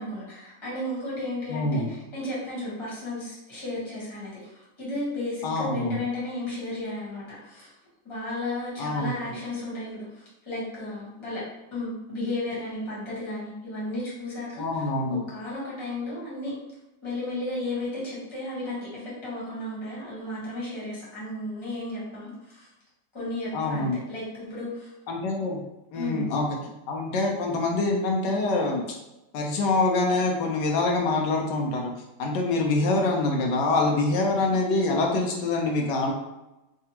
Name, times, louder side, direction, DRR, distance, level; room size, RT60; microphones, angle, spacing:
voice 1, 0.0-7.7 8.0-11.4 11.7-14.9 15.3-16.5 17.0-22.7 23.1-24.9 25.9-26.2, left 1 dB, 20° left, -8 dB, 1.1 m, -34 dB
voice 2, 1.5-1.9 5.4-6.0 8.8-9.1 14.6-15.2 23.5-24.0 25.1-25.6 25.9-26.5 26.9-29.0 29.3-31.9 32.2-36.1, left 2 dB, 85° left, 0 dB, 1.2 m, -25 dB
3.3 x 2.3 x 2.8 m, 0.97 s
omnidirectional pair, 1.8 m